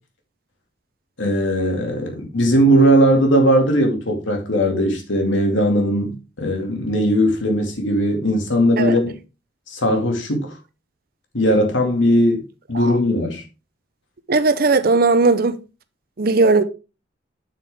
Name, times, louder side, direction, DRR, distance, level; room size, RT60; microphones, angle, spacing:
voice 1, 1.2-6.1 6.4-9.2 9.7-10.5 11.3-13.4, equal, 85° left, 2.3 m, -18 dB
voice 2, 14.3-15.5 16.2-16.6, right 3 dB, 50° right, 0.7 m, -16 dB
8.0 x 6.7 x 3.5 m
head